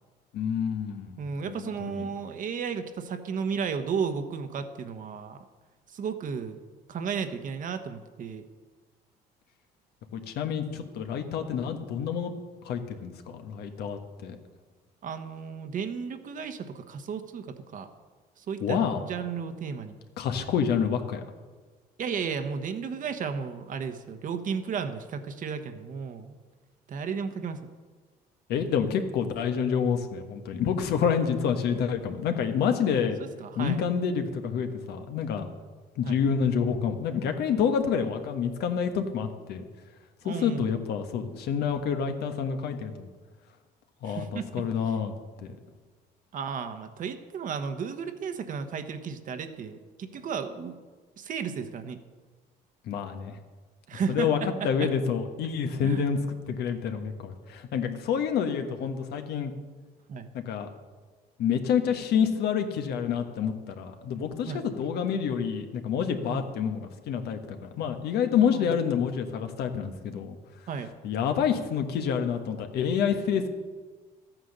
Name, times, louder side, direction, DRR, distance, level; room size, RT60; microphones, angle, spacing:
voice 1, 0.3-2.0 10.1-12.3 12.6-14.4 18.6-19.0 20.2-21.2 28.5-33.2 33.6-35.5 36.0-39.6 40.2-43.1 44.0-45.1 45.4-45.5 52.8-53.4 54.1-54.4 54.6-59.5 60.3-60.7 61.4-70.4 71.0-73.5, left 7 dB, 75° left, 6 dB, 1.4 m, -28 dB
voice 2, 1.2-5.4 5.9-6.6 6.9-8.4 15.0-17.9 18.4-20.0 22.0-26.3 26.9-27.7 33.4-33.8 36.0-36.2 40.2-40.7 44.0-44.6 46.3-50.8 51.2-52.0 53.9-54.9 55.8-56.1 60.1-60.3 64.5-64.6 66.3-66.4 68.4-68.8 70.7-70.9, right 6 dB, 50° right, 8 dB, 1.2 m, -34 dB
13.5 x 9.0 x 6.7 m, 1.4 s
cardioid pair, 110°, 17 cm